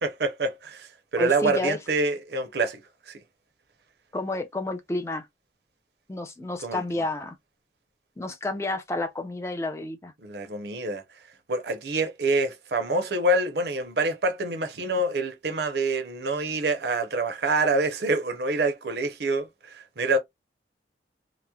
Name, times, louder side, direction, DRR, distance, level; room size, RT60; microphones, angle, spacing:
voice 1, 0.0-3.2 6.6-6.8 10.2-11.0 11.5-20.2, right 2 dB, 70° right, 0.7 m, -26 dB
voice 2, 1.2-1.8 4.1-5.3 6.1-7.4 8.2-10.1, left 2 dB, 15° left, 0.4 m, -30 dB
2.9 x 2.1 x 2.3 m
head